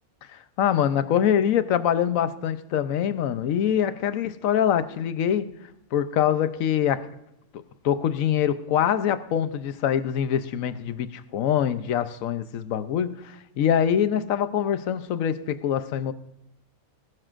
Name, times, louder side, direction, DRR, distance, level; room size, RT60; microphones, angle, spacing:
voice 1, 0.3-5.5 5.9-7.1 7.8-16.1, left 9 dB, 70° left, 1.0 m, -24 dB
20.5 x 12.0 x 2.5 m
omnidirectional pair, 1.6 m